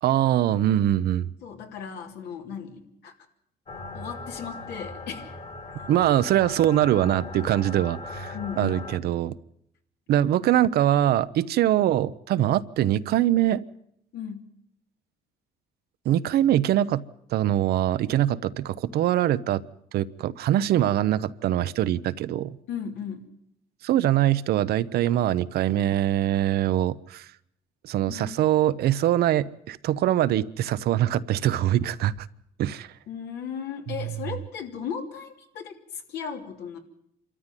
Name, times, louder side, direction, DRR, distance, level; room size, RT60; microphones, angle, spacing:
voice 1, 0.0-1.3 5.9-9.3 10.1-13.6 16.0-17.0 17.3-19.6 19.9-22.6 23.8-27.3 27.8-32.3 32.6-32.9 33.9-34.1, right 12 dB, 70° right, 14 dB, 0.8 m, -23 dB
voice 2, 1.4-3.1 3.9-5.3 8.3-8.8 14.1-14.4 22.7-23.3 28.1-28.4 33.1-36.8, left 7 dB, 75° left, 3 dB, 3.1 m, -36 dB
sound 1, 3.7-9.0, left 2 dB, 40° left, 2.6 m, -39 dB
26.5 x 13.5 x 9.1 m, 0.73 s
cardioid pair, 110°, 17 cm